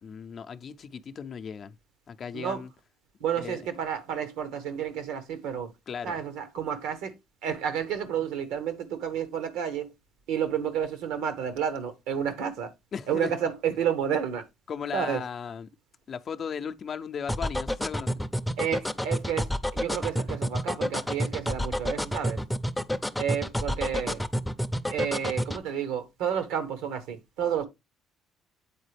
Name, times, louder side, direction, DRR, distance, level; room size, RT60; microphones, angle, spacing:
voice 1, 0.0-1.7 2.1-2.7 3.3-3.6 5.9-6.2 12.9-13.3 14.7-15.7 16.1-18.1, left 7 dB, 50° left, 0.5 m, -36 dB
voice 2, 3.2-5.7 6.0-7.1 7.4-9.9 10.3-12.7 13.1-14.4 14.9-15.2 18.6-22.4 23.2-24.2 24.9-27.6, right 8 dB, 80° right, 1.0 m, -30 dB
sound 1, 17.3-25.6, equal, 5° left, 0.5 m, -29 dB
8.3 x 4.0 x 3.2 m
hypercardioid pair, 60°, 0 cm